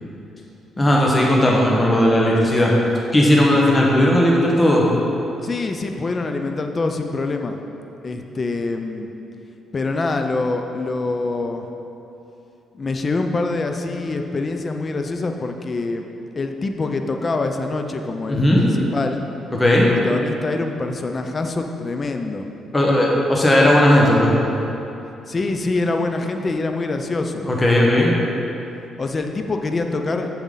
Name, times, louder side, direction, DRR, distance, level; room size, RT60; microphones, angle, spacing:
voice 1, 0.8-2.7 3.1-4.8 18.3-18.6 19.5-19.9 22.7-24.3 27.5-28.1, left 1 dB, 20° left, -3 dB, 1.4 m, -16 dB
voice 2, 5.4-7.6 8.0-9.1 9.7-11.7 12.7-16.1 16.3-19.3 19.7-22.5 25.3-27.5 29.0-30.3, left 3 dB, 35° left, 5 dB, 0.6 m, -25 dB
7.3 x 7.0 x 4.0 m, 3.0 s
cardioid pair, 90°, 0 cm